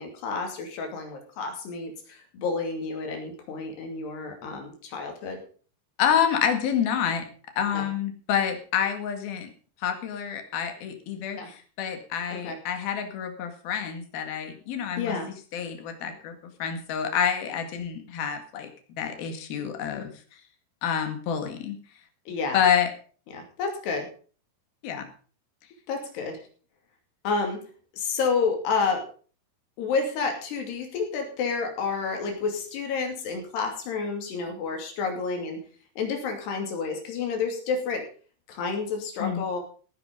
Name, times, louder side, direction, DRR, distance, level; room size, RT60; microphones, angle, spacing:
voice 1, 0.0-5.4 7.7-7.9 11.4-11.5 12.3-12.6 15.0-15.3 22.3-22.6 23.3-24.1 25.9-26.4 27.2-27.6 27.9-29.0 29.8-35.6 36.0-38.0 38.5-39.6, left 4 dB, 80° left, 3 dB, 4.7 m, -30 dB
voice 2, 6.0-7.3 7.6-9.5 9.8-15.2 15.5-20.1 20.8-21.8 22.5-22.9 24.8-25.1 39.2-39.4, left 8 dB, 65° left, 6 dB, 3.7 m, -28 dB
16.0 x 10.0 x 5.2 m, 0.41 s
omnidirectional pair, 4.7 m